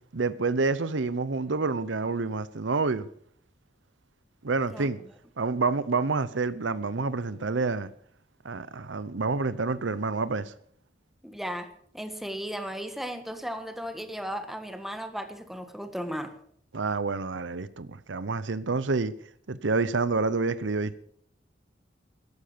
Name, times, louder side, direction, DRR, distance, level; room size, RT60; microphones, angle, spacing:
voice 1, 0.1-3.1 4.4-5.0 5.4-7.9 8.4-10.5 16.7-19.1 19.5-21.0, right 3 dB, 85° right, 0.8 m, -28 dB
voice 2, 11.2-11.7 11.9-16.3, equal, ahead, 1.6 m, -35 dB
13.5 x 11.5 x 6.8 m
head